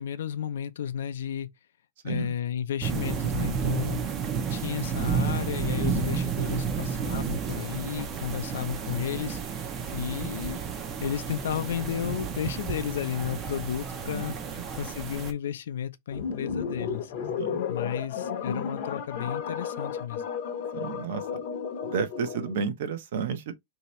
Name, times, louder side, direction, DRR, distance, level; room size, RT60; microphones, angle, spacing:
voice 1, 0.0-1.5 2.0-4.0 4.5-10.6 11.0-14.3 14.8-17.1 17.7-20.2, left 9 dB, 80° left, 0.5 m, -33 dB
sound 1, 2.8-15.3, right 6 dB, 20° right, 0.5 m, -31 dB
voice 2, 14.1-14.6 17.4-17.6 20.7-21.2 21.8-23.5, right 6 dB, 60° right, 0.7 m, -32 dB
sound 2, 16.1-22.6, left 7 dB, 45° left, 0.7 m, -33 dB
3.2 x 2.8 x 3.0 m
supercardioid pair, 175°, 0 cm